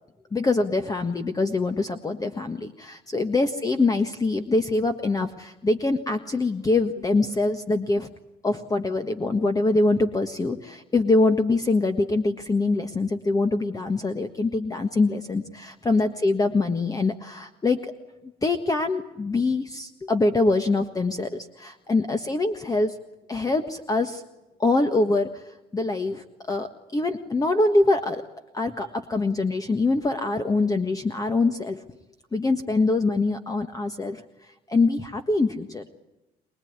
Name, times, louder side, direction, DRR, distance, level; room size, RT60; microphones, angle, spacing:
voice 1, 0.3-8.1 8.4-17.9 18.4-23.0 23.3-24.2 24.6-28.2 28.5-31.8 32.3-34.2 34.7-35.8, left 3 dB, 20° left, 7 dB, 1.6 m, -24 dB
24.0 x 20.5 x 9.7 m, 0.98 s
cardioid pair, 110°, 17 cm